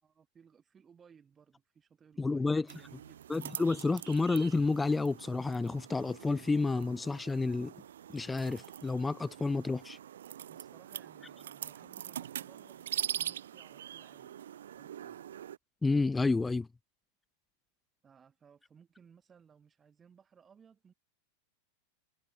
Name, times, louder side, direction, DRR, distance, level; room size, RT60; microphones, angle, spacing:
voice 1, 0.0-3.4 10.5-15.2 18.0-20.9, right 7 dB, 20° right, 5.8 m, -61 dB
voice 2, 2.2-2.7 3.3-7.7 8.1-10.0 15.8-16.7, left 3 dB, 10° left, 0.6 m, -30 dB
sound 1, 2.7-15.6, right 10 dB, 60° right, 1.7 m, -43 dB
figure-of-eight pair, 90°, 0 cm